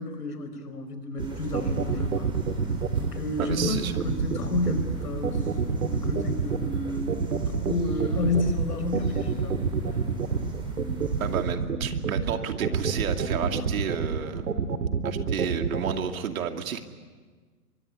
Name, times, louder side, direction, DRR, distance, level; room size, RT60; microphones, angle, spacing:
voice 1, 0.0-2.3 3.0-5.5 5.8-7.1 7.5-9.6 9.9-10.0, left 3 dB, 85° left, 8 dB, 4.9 m, -31 dB
sound 1, 1.2-11.4, right 2 dB, 10° right, 5.8 m, -39 dB
sound 2, 1.2-15.9, right 6 dB, 90° right, 2.2 m, -27 dB
voice 2, 3.4-3.9 11.2-14.5 15.0-16.8, right 8 dB, 65° right, 6 dB, 2.6 m, -31 dB
24.0 x 22.5 x 9.9 m, 1.4 s
hypercardioid pair, 140°, 46 cm